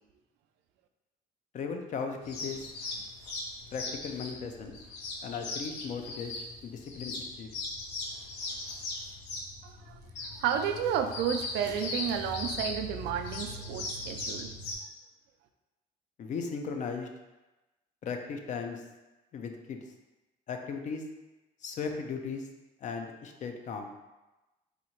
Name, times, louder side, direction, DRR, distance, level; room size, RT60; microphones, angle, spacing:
voice 1, 1.5-2.7 3.7-4.7 5.2-7.5 16.2-17.1 18.0-18.8 19.3-19.8 20.5-21.0 21.6-22.4 22.8-23.9, left 5 dB, 45° left, 5 dB, 0.5 m, -37 dB
sound 1, 2.2-14.7, left 2 dB, 85° left, 0.7 m, -39 dB
voice 2, 9.6-14.5, right 8 dB, 80° right, 6 dB, 0.4 m, -32 dB
4.1 x 2.4 x 3.0 m, 1.1 s
cardioid pair, 110°, 17 cm